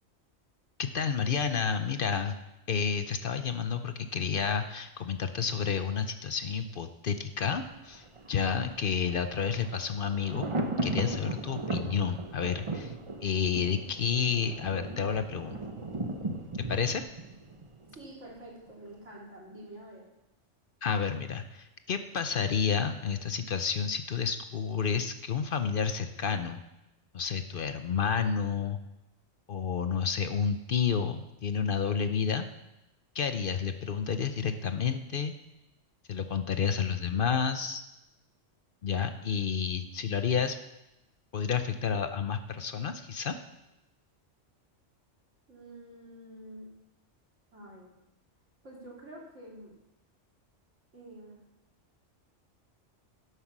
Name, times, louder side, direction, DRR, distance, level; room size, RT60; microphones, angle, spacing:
voice 1, 0.8-2.3 2.7-10.5 10.8-12.9 13.2-15.6 16.7-17.0 20.8-26.6 27.1-28.8 29.5-32.5 33.1-35.3 36.1-37.8 38.8-40.6 41.3-43.4, left 6 dB, 55° left, 9 dB, 0.8 m, -30 dB
Thunder, 7.5-18.4 18.7-18.8, right 2 dB, 30° right, 0.9 m, -37 dB
voice 2, 17.9-20.1 45.5-46.7 47.5-47.9 48.6-49.7 50.9-51.4, right 1 dB, 85° right, -4 dB, 3.6 m, -48 dB
11.5 x 8.0 x 6.0 m, 0.93 s
omnidirectional pair, 1.2 m